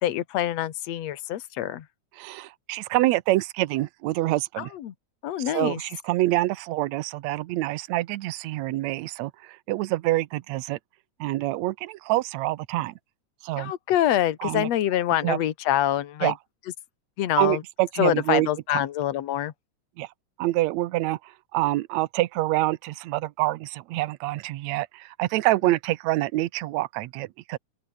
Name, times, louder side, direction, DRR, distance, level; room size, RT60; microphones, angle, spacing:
voice 1, 0.0-1.9 4.6-4.9 5.2-5.8 13.6-16.3 17.2-17.6 18.0-19.5, left 12 dB, 60° left, 2.5 m, -25 dB
voice 2, 2.2-4.7 5.5-10.8 11.2-12.9 13.4-13.7 14.4-14.7 15.2-15.4 16.2-16.3 17.4-18.8 20.0-20.1 20.4-21.2 21.5-27.6, right 17 dB, 75° right, 1.9 m, -26 dB
open air
omnidirectional pair, 3.5 m